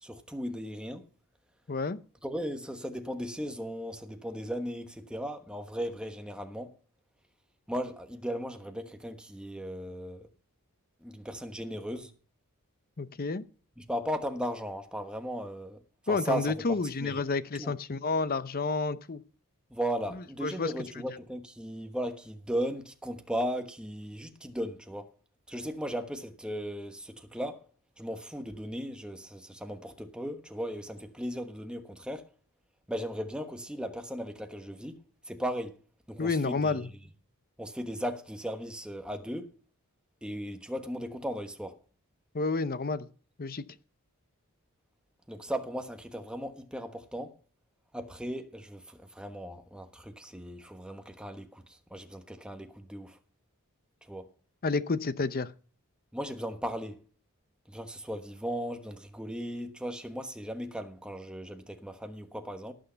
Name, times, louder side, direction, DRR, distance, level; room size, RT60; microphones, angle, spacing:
voice 1, 0.0-1.1 2.2-6.7 7.7-10.3 11.0-12.1 13.8-15.8 16.1-16.6 17.0-17.2 17.6-17.7 19.7-25.1 25.5-27.6 28.0-32.3 32.9-35.0 35.3-35.8 36.1-36.8 37.6-39.5 40.2-41.8 45.3-47.3 47.9-53.2 54.1-54.3 56.1-57.0 57.7-62.7, equal, 5° right, 1.2 m, -36 dB
voice 2, 1.7-2.0 13.0-13.4 16.1-19.2 20.4-20.7 36.2-36.9 42.3-43.1 43.4-43.6 54.6-55.5, left 3 dB, 40° left, 0.7 m, -30 dB
18.0 x 6.5 x 5.7 m
head